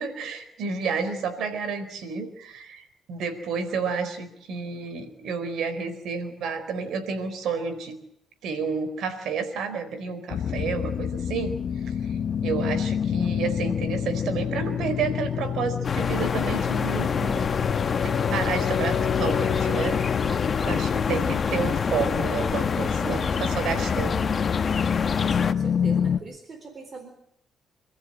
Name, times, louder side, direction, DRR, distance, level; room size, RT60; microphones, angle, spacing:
voice 1, 0.0-8.0 8.4-11.6 11.8-17.5 18.0-24.2, right 5 dB, 75° right, 9 dB, 4.4 m, -31 dB
sound 1, 10.3-26.2, left 8 dB, 60° left, 1.1 m, -28 dB
sound 2, 15.8-25.5, left 5 dB, 40° left, 1.4 m, -27 dB
voice 2, 25.1-27.1, right 4 dB, 45° right, 7 dB, 4.0 m, -41 dB
27.0 x 14.0 x 8.7 m, 0.74 s
cardioid pair, 90°, 0 cm